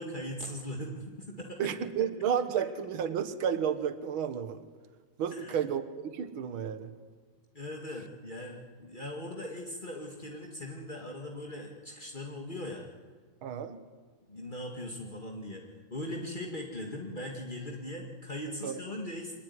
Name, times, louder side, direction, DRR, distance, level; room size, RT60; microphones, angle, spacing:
voice 1, 0.0-1.7 5.3-5.6 7.5-12.8 14.3-19.3, left 1 dB, 20° left, -1 dB, 1.5 m, -40 dB
voice 2, 1.6-4.6 5.2-6.9 13.4-13.8 18.6-18.8, right 8 dB, 60° right, 10 dB, 1.3 m, -32 dB
26.0 x 20.0 x 9.7 m, 1.5 s
omnidirectional pair, 4.1 m